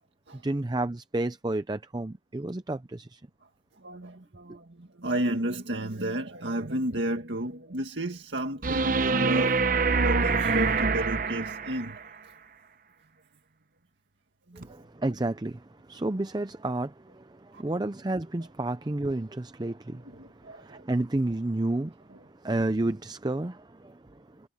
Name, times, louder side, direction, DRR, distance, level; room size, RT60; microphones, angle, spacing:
voice 1, 0.3-3.2 4.5-4.6 14.6-24.5, right 2 dB, 25° right, 0.6 m, -31 dB
voice 2, 3.8-9.7 10.0-12.1 14.5-14.8 17.5-17.6 20.0-20.8, right 1 dB, 80° right, 2.0 m, -32 dB
sound 1, 8.6-12.0 14.6-14.7, right 4 dB, 50° right, 0.9 m, -25 dB
head